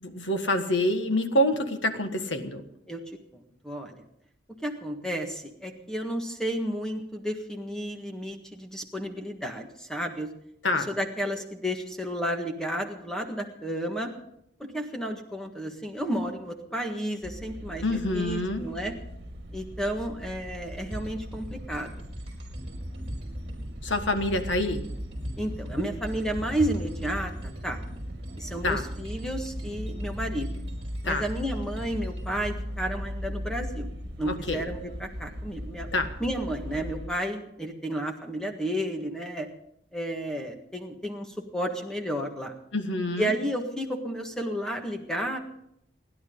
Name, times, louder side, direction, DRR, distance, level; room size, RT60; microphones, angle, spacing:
voice 1, 0.0-2.6 10.6-10.9 17.8-18.7 23.8-24.8 28.6-28.8 31.0-31.2 34.2-34.6 35.9-36.1 42.7-43.3, left 1 dB, 85° left, 7 dB, 1.6 m, -26 dB
voice 2, 3.6-4.0 4.6-10.3 10.7-14.1 14.6-18.9 19.5-21.9 25.4-27.8 28.4-30.5 31.0-33.9 34.2-35.9 36.2-39.5 39.9-42.5 43.2-45.4, equal, 5° left, 3 dB, 1.6 m, -32 dB
sound 1, 17.2-37.1, equal, 60° right, 2.1 m, -38 dB
sound 2, 20.6-32.6, equal, 35° right, 4.9 m, -41 dB
30.0 x 10.5 x 3.9 m, 0.76 s
head